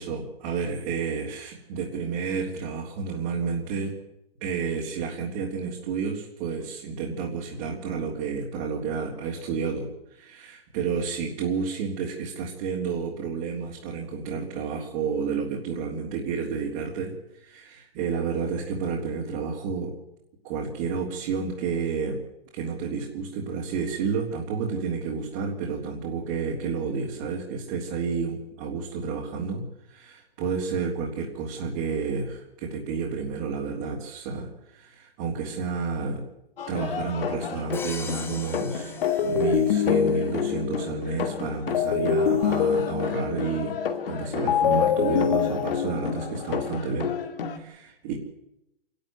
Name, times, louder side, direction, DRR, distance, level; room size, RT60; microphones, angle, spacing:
voice 1, 0.0-4.0 4.4-20.0 20.4-22.2 22.5-36.2 36.7-43.7 44.1-47.1 47.4-48.1, right 5 dB, 35° right, -3 dB, 3.8 m, -30 dB
sound 1, 36.6-47.6, left 6 dB, 65° left, 2.5 m, -33 dB
Crash cymbal, 37.7-39.9, left 4 dB, 5° left, 1.2 m, -39 dB
sound 2, 39.0-46.7, left 7 dB, 50° left, 1.6 m, -25 dB
26.0 x 12.5 x 9.6 m, 0.89 s
hypercardioid pair, 150°, 30 cm